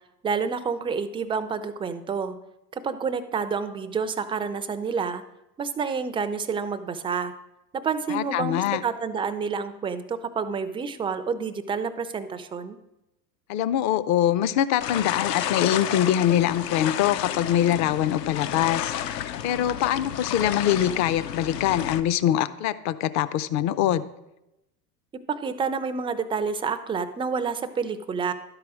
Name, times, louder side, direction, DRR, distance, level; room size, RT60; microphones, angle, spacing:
voice 1, 0.2-2.4 2.7-5.2 5.6-7.3 7.7-12.8 25.3-28.3, right 5 dB, 10° right, 11 dB, 0.3 m, -29 dB
voice 2, 8.1-8.8 13.5-18.9 19.4-24.0, left 11 dB, 35° left, 15 dB, 0.5 m, -23 dB
sound 1, 14.8-22.0, left 10 dB, 75° left, 0.8 m, -31 dB
11.5 x 4.9 x 6.2 m, 0.92 s
hypercardioid pair, 80°, 50 cm